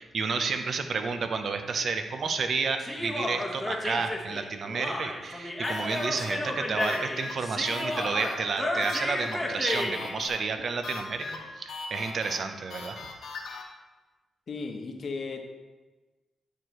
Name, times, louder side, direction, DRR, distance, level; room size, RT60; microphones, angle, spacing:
voice 1, 0.0-13.0, right 4 dB, 60° right, 7 dB, 0.6 m, -31 dB
Human voice, 2.8-10.2, left 1 dB, 10° left, 1.0 m, -32 dB
sound 1, 5.6-13.6, left 3 dB, 75° left, 1.0 m, -40 dB
voice 2, 14.5-15.4, left 4 dB, 55° left, 4 dB, 0.9 m, -35 dB
9.8 x 4.7 x 3.0 m, 1.2 s
cardioid pair, 75°, 0 cm